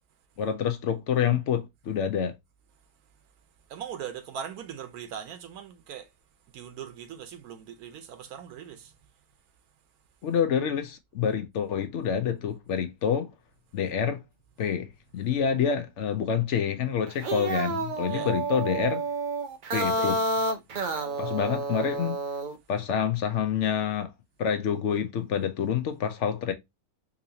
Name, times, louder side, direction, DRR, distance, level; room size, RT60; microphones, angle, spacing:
voice 1, 0.4-2.4 10.2-13.3 13.7-14.2 14.6-19.0 19.7-20.2 21.2-22.2 22.7-24.1 24.4-26.5, left 7 dB, 60° left, 0.9 m, -27 dB
voice 2, 3.7-6.1 6.5-9.0 18.1-18.3 20.0-20.2 20.9-21.6, right 8 dB, 90° right, 1.2 m, -40 dB
sound 1, 17.1-22.6, right 2 dB, 50° right, 0.5 m, -30 dB
3.9 x 2.9 x 2.7 m
omnidirectional pair, 1.5 m